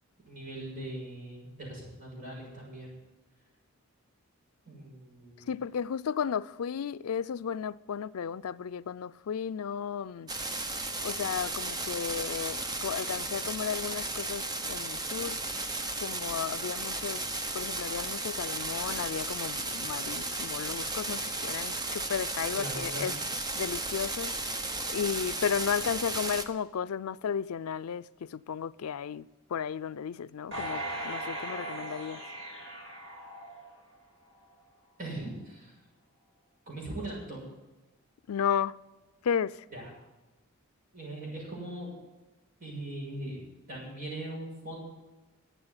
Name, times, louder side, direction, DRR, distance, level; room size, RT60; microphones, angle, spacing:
voice 1, 0.2-3.0 4.6-5.5 22.6-23.1 35.0-35.7 36.7-37.4 39.7-39.9 40.9-41.9 42.6-43.4 43.7-44.9, right 1 dB, 35° right, 6.7 m, -40 dB
voice 2, 5.5-10.3 11.0-15.4 16.0-23.2 23.6-32.2 38.3-38.8 39.2-39.6, left 7 dB, 85° left, 0.4 m, -34 dB
sound 1, 10.3-26.4, right 2 dB, 20° right, 0.9 m, -34 dB
sound 2, 30.5-34.0 34.4-34.5, right 1 dB, 60° right, 6.7 m, -38 dB
13.0 x 8.3 x 9.6 m
head